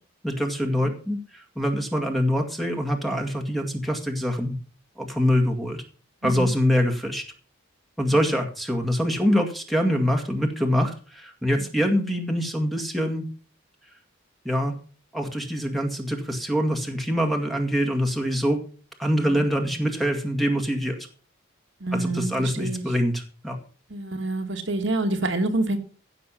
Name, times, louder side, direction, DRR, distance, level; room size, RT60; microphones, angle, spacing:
voice 1, 0.2-4.6 5.0-5.8 6.2-7.2 8.0-13.3 14.4-14.7 15.1-18.6 19.0-21.0 21.9-23.6, equal, ahead, 2.1 m, -24 dB
voice 2, 6.2-6.5 8.1-8.2 11.6-11.8 19.2-19.9 21.8-22.9 23.9-25.8, right 2 dB, 65° right, 1.8 m, -28 dB
15.5 x 6.9 x 5.7 m
head